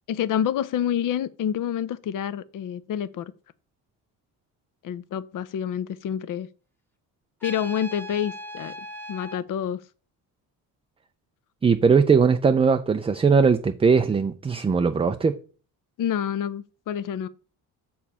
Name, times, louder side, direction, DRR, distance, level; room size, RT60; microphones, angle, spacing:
voice 1, 0.1-3.3 4.8-6.5 7.4-8.7 9.1-9.8 16.0-17.3, left 9 dB, 50° left, 0.7 m, -28 dB
Trumpet, 7.4-9.4, equal, 5° left, 1.0 m, -38 dB
voice 2, 11.6-15.3, right 5 dB, 15° right, 0.4 m, -20 dB
7.3 x 4.7 x 5.4 m
cardioid pair, 100°, 40 cm